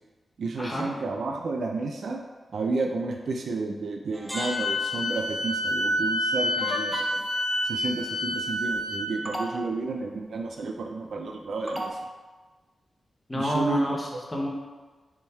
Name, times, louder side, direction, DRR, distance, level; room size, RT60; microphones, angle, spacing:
voice 1, 0.4-2.2 2.5-7.2 7.6-11.9 13.3-14.0, right 3 dB, 75° right, 2 dB, 0.3 m, -31 dB
sound 1, 4.1-5.1 6.6-7.4 8.7-8.8 9.3-9.6 11.7-12.0, equal, ahead, 0.5 m, -34 dB
Wind instrument woodwind instrument, 4.3-9.1, left 1 dB, 80° left, 0.3 m, -28 dB
voice 2, 13.3-14.5, equal, 25° left, -2 dB, 0.9 m, -29 dB
3.6 x 2.6 x 4.2 m, 1.3 s
cardioid pair, 65°, 0 cm